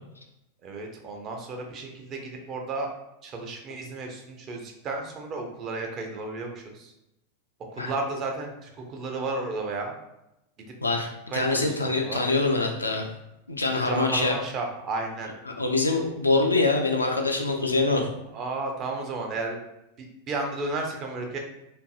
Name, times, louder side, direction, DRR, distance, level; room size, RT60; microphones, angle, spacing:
voice 1, 0.6-2.9 3.2-6.9 7.7-9.9 10.6-10.8 11.3-11.8 12.0-12.3 13.8-15.3 18.3-19.6 20.0-21.4, right 3 dB, 30° right, 2 dB, 0.5 m, -33 dB
voice 2, 10.8-13.1 13.5-14.3 15.6-18.1, left 3 dB, 80° left, 2 dB, 0.4 m, -24 dB
2.5 x 2.5 x 2.3 m, 0.88 s
figure-of-eight pair, 90°, 0 cm